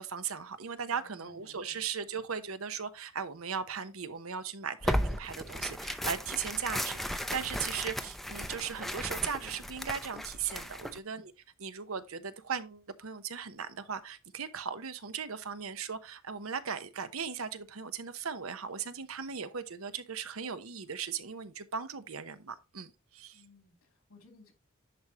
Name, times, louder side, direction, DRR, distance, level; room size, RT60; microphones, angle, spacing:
voice 1, 0.0-11.3 11.6-23.4, right 6 dB, 85° right, 0.9 m, -38 dB
voice 2, 0.9-1.9 10.9-11.3 23.3-24.5, left 3 dB, 90° left, 3.1 m, -60 dB
Tearing, 4.8-11.0, equal, ahead, 0.4 m, -35 dB
10.0 x 4.9 x 3.0 m
head